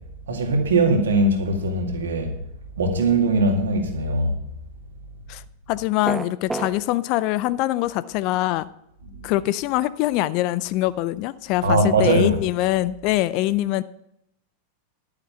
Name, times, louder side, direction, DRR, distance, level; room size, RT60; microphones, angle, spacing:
voice 1, 0.3-2.3 2.8-4.4 11.6-12.4, right 2 dB, 65° right, 2.1 m, -20 dB
voice 2, 5.7-8.7 9.2-13.8, left 16 dB, 45° left, 0.4 m, -23 dB
sound 1, 6.0-6.7, right 2 dB, 10° right, 0.7 m, -27 dB
11.0 x 9.0 x 5.7 m
figure-of-eight pair, 90°, 0 cm